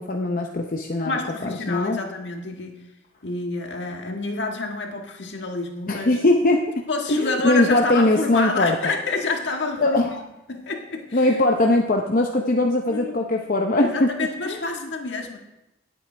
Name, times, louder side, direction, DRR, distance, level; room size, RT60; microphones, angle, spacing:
voice 1, 0.0-2.0 5.9-6.7 7.1-8.8 9.8-10.1 11.1-14.1 14.5-14.6, left 2 dB, 45° left, 2 dB, 0.7 m, -21 dB
voice 2, 1.0-2.8 3.2-6.2 6.9-10.2 10.5-11.4 12.9-13.2 13.8-15.4, left 3 dB, 70° left, 2 dB, 1.7 m, -28 dB
19.0 x 8.4 x 3.4 m, 0.94 s
head